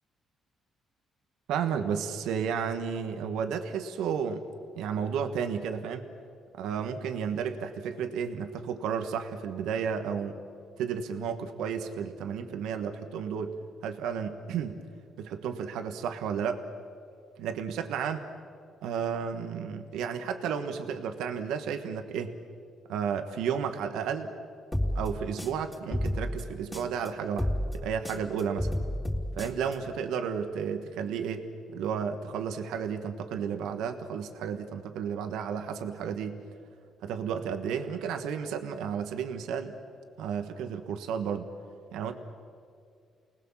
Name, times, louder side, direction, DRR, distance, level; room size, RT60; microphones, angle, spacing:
voice 1, 1.5-4.4 4.7-6.0 6.6-10.4 10.8-13.5 13.8-14.8 15.2-16.6 17.4-18.2 18.8-22.3 22.9-24.3 24.9-27.5 27.7-28.7 29.4-31.5 31.7-36.4 37.0-39.7 40.2-41.5 41.9-42.2, right 7 dB, 90° right, 7 dB, 1.4 m, -32 dB
sound 1, 24.7-27.1 27.4-29.7, left 1 dB, 10° left, 3.7 m, -31 dB
29.5 x 19.5 x 7.3 m, 2.3 s
cardioid pair, 90°, 0 cm